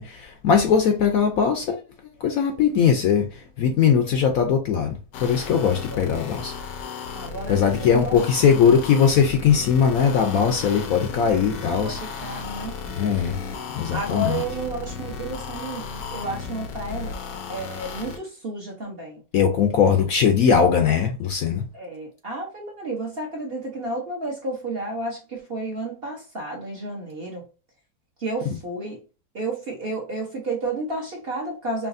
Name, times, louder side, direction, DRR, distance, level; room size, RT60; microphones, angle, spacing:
voice 1, 0.0-1.8 2.2-6.5 7.5-12.0 13.0-13.3 13.7-14.4 19.3-21.6, left 7 dB, 70° left, 0.9 m, -20 dB
sound 1, 5.1-18.2, left 5 dB, 90° left, 1.4 m, -34 dB
voice 2, 7.1-8.2 11.8-12.7 13.9-17.1 17.5-19.2 21.7-27.4 28.2-29.0 29.3-31.9, right 2 dB, 45° right, 0.9 m, -31 dB
4.8 x 2.9 x 2.5 m
omnidirectional pair, 1.9 m